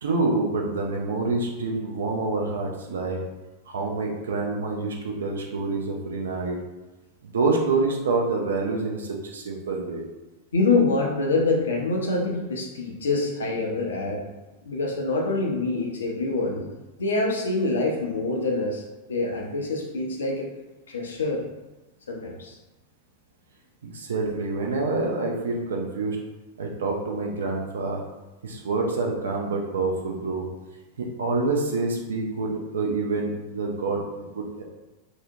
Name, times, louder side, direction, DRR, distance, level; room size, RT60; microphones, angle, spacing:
voice 1, 0.0-3.2 3.7-6.6 7.2-10.0 23.8-26.2 26.6-28.0 28.4-30.5 31.0-34.6, right 3 dB, 65° right, 1 dB, 0.4 m, -27 dB
voice 2, 10.5-14.3 14.6-16.7 17.0-18.8 19.1-20.5 20.9-21.4 22.1-22.5, left 3 dB, 70° left, 0 dB, 0.5 m, -25 dB
2.7 x 2.0 x 2.6 m, 1.1 s
figure-of-eight pair, 90°, 0 cm